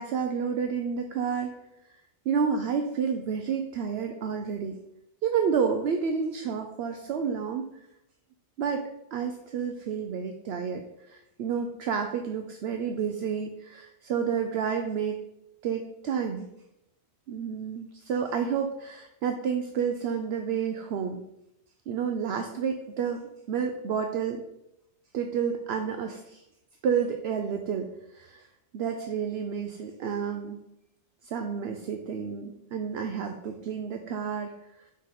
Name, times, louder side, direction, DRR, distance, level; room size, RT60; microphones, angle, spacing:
voice 1, 0.0-1.5 2.3-4.8 5.2-7.7 8.6-8.8 9.1-15.2 15.6-16.5 17.3-21.2 21.9-24.4 25.1-26.4 26.8-28.5 28.7-30.6 31.2-34.5 34.8-34.9, right 6 dB, 70° right, 5 dB, 0.8 m, -30 dB
4.7 x 4.4 x 5.7 m, 0.84 s
omnidirectional pair, 1.1 m